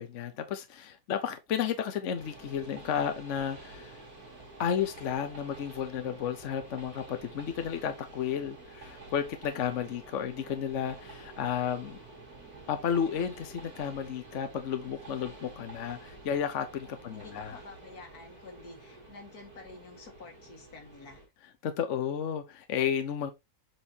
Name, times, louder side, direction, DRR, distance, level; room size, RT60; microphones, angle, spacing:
voice 1, 0.0-4.0 4.6-12.0 12.7-17.5 21.6-23.3, left 8 dB, 60° left, 1.1 m, -32 dB
Train, 2.1-21.3, right 2 dB, 85° right, 2.7 m, -49 dB
voice 2, 16.9-21.2, left 3 dB, 85° left, 2.3 m, -49 dB
7.8 x 4.5 x 2.8 m
omnidirectional pair, 1.6 m